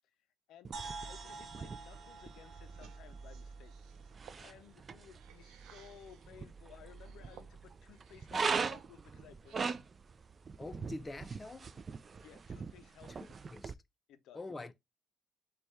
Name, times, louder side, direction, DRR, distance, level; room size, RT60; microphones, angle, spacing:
sound 1, 0.6-13.7, right 5 dB, 40° right, 0.3 m, -42 dB
sound 2, 0.7-4.5, right 4 dB, 55° right, 0.9 m, -49 dB
voice 1, 1.0-3.8 4.4-9.8 12.2-13.4 14.1-14.4, left 9 dB, 85° left, 0.4 m, -57 dB
sound 3, 2.7-6.4 6.9-8.6 9.0-10.0, right 8 dB, 80° right, 0.6 m, -61 dB
voice 2, 10.6-11.7 13.5-13.8 14.3-14.7, left 2 dB, 20° left, 0.5 m, -44 dB
4.1 x 2.3 x 4.6 m
cardioid pair, 90°, 0 cm